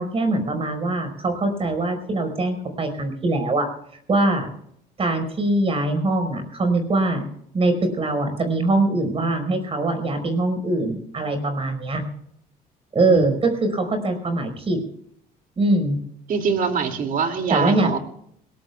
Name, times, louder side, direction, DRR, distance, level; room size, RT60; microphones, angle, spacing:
voice 1, 0.0-3.7 4.1-4.5 5.0-7.2 7.5-12.0 12.9-14.8 15.6-16.0 17.5-17.9, right 2 dB, 35° right, 7 dB, 4.9 m, -22 dB
voice 2, 16.3-18.0, right 5 dB, 55° right, 4 dB, 2.6 m, -24 dB
22.0 x 19.5 x 2.4 m, 0.70 s
cardioid pair, 110°, 17 cm